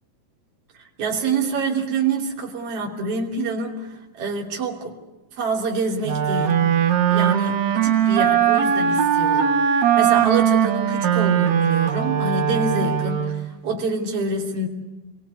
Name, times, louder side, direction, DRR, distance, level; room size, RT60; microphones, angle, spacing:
voice 1, 0.8-5.0 5.4-6.7 7.1-14.7, right 3 dB, 50° right, -2 dB, 4.0 m, -27 dB
Wind instrument woodwind instrument, 6.0-13.5, right 8 dB, 65° right, 2.4 m, -20 dB
28.5 x 22.5 x 8.4 m, 1.1 s
omnidirectional pair, 3.5 m